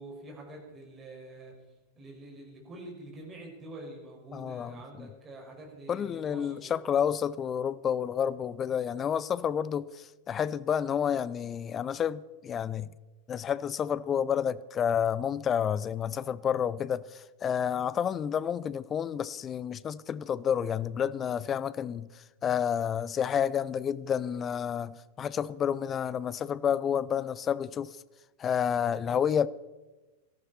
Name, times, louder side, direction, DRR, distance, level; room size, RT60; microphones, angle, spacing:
voice 1, 0.0-1.5 2.0-6.7, right 1 dB, 20° right, 5.7 m, -46 dB
voice 2, 4.3-5.1 5.9-12.9 13.3-28.0 28.4-29.5, left 8 dB, 25° left, 0.6 m, -30 dB
18.0 x 14.5 x 4.3 m
figure-of-eight pair, 90°, 0 cm